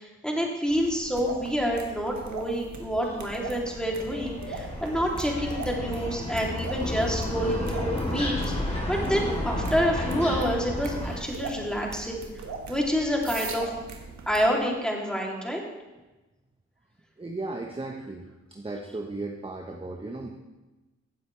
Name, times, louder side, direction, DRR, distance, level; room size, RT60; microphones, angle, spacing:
voice 1, 0.0-8.5 8.9-12.2 12.7-13.7 14.3-15.6, equal, 5° left, -2 dB, 3.2 m, -28 dB
sound 1, 0.7-14.4, right 4 dB, 70° right, 1.5 m, -41 dB
sound 2, 2.8-11.2, left 1 dB, 20° left, 3.8 m, -32 dB
voice 2, 17.2-18.3 18.5-20.3, right 2 dB, 20° right, 1 dB, 1.2 m, -35 dB
15.5 x 7.9 x 3.4 m, 1.1 s
cardioid pair, 55°, 29 cm